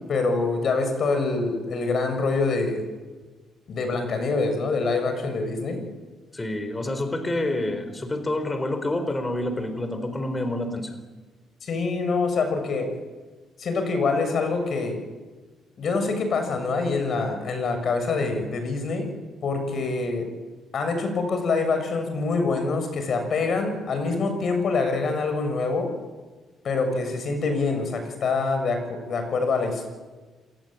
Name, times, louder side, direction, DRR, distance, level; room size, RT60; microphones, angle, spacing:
voice 1, 0.1-2.8 3.7-5.8 11.6-12.9 13.6-15.0 15.8-19.1 19.4-20.3 20.7-25.9 26.6-29.9, left 3 dB, 55° left, 7 dB, 7.3 m, -25 dB
voice 2, 6.3-11.0, left 1 dB, 20° left, 8 dB, 4.1 m, -28 dB
27.5 x 19.0 x 9.1 m, 1.3 s
cardioid pair, 90°, 0 cm